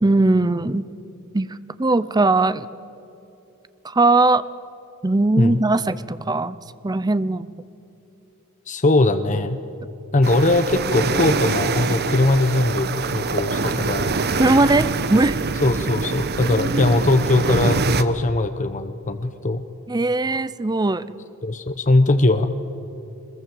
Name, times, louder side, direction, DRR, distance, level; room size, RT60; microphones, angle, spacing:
voice 1, 0.0-0.9 1.3-2.7 3.8-4.5 5.0-6.6 6.8-7.5 14.4-15.4 16.4-16.9 19.9-21.1, right 2 dB, 20° right, 15 dB, 0.6 m, -19 dB
voice 2, 8.7-9.6 10.1-14.2 15.6-19.6 21.4-22.5, left 2 dB, 35° left, 10 dB, 0.8 m, -20 dB
sound 1, 10.2-18.0, right 4 dB, 45° right, 0.9 m, -24 dB
22.5 x 21.5 x 7.7 m, 2.9 s
head